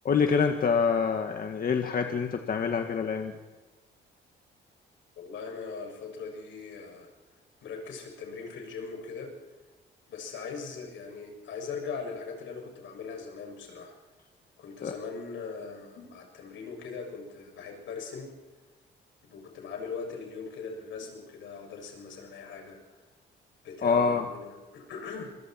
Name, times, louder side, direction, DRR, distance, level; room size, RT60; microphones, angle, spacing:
voice 1, 0.0-3.3 14.8-14.9 23.8-24.2, left 5 dB, 50° left, 5 dB, 1.9 m, -26 dB
voice 2, 5.2-7.1 7.6-9.3 10.1-13.9 14.6-18.3 19.2-22.8 23.6-25.4, left 5 dB, 75° left, 2 dB, 6.8 m, -40 dB
27.0 x 21.5 x 4.5 m, 1.2 s
cardioid pair, 90°, 20 cm